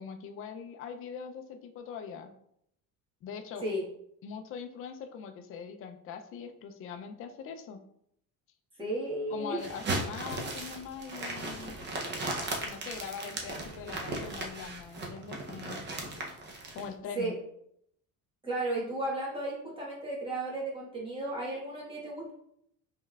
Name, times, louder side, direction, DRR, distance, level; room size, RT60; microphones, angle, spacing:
voice 1, 0.0-2.3 3.2-3.6 4.2-7.8 9.3-11.8 12.6-15.8 16.7-17.3, left 6 dB, 40° left, 6 dB, 0.4 m, -42 dB
voice 2, 8.8-9.6 17.1-17.3 18.4-22.3, right 1 dB, 15° right, -5 dB, 1.3 m, -34 dB
sound 1, 9.6-16.8, right 2 dB, 30° right, 0.6 m, -37 dB
5.4 x 3.2 x 2.3 m, 0.72 s
cardioid pair, 165°, 36 cm